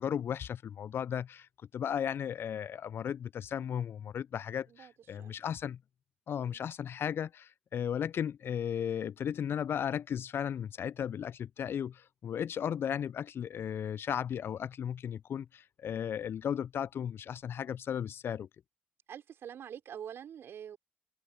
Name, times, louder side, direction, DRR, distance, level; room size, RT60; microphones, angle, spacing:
voice 1, 0.0-5.8 6.3-18.5, left 8 dB, 55° left, 0.7 m, -35 dB
voice 2, 19.1-20.8, right 9 dB, 55° right, 5.6 m, -45 dB
hypercardioid pair, 45°, 5 cm